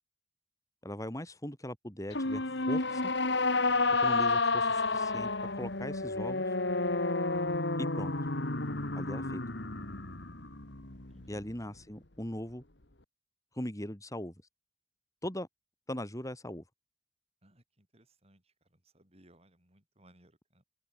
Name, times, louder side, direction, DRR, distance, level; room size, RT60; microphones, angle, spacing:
voice 1, 0.8-3.0 4.0-6.4 7.8-8.1 8.9-9.4 11.3-12.6 13.5-14.3 15.2-15.5 15.9-16.6, left 1 dB, 20° left, 4.5 m, -39 dB
sound 1, 2.1-11.5, left 3 dB, 70° left, 2.5 m, -31 dB
voice 2, 7.2-7.6 11.1-11.4 17.4-18.4 18.9-20.6, right 1 dB, 35° right, 8.0 m, -63 dB
head